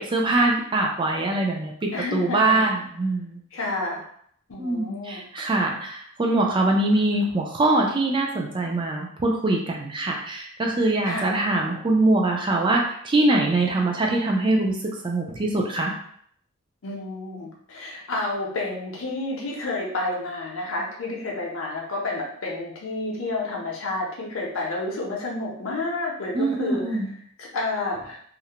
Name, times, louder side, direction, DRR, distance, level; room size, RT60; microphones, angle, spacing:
voice 1, 0.0-3.4 4.6-15.9 26.3-27.1, right 2 dB, 25° right, 0 dB, 0.4 m, -23 dB
voice 2, 1.9-2.6 3.5-4.0 4.5-5.2 11.0-11.4 16.8-27.0 27.4-28.2, left 2 dB, 70° left, -3 dB, 0.6 m, -30 dB
2.4 x 2.0 x 2.8 m, 0.64 s
head